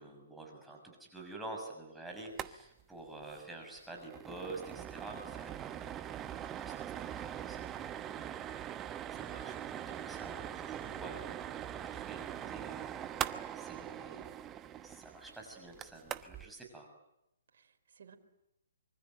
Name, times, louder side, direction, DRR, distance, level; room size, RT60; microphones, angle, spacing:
voice 1, 0.0-5.9 6.6-8.6 9.1-11.6 11.9-12.9 13.5-16.9, right 2 dB, 5° right, 1 dB, 6.3 m, -48 dB
sound 1, 2.3-2.5 2.8-2.9 3.2-3.4 3.8-16.5, right 10 dB, 20° right, 1.1 m, -42 dB
voice 2, 17.5-18.2, right 7 dB, 65° right, 5 dB, 4.2 m, -60 dB
25.5 x 24.0 x 9.3 m, 0.85 s
hypercardioid pair, 135°, 0 cm